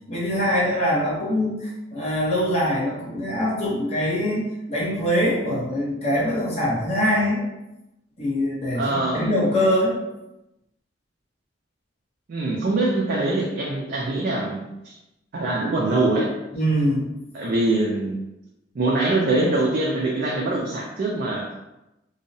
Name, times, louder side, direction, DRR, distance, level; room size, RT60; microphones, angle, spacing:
voice 1, 0.1-7.5 8.2-10.0 16.5-17.1, equal, 35° left, -6 dB, 0.8 m, -23 dB
voice 2, 8.7-9.3 12.3-14.9 15.3-16.3 17.3-18.2 18.7-21.5, right 2 dB, 50° right, -3 dB, 0.4 m, -23 dB
2.6 x 2.0 x 2.6 m, 0.93 s
head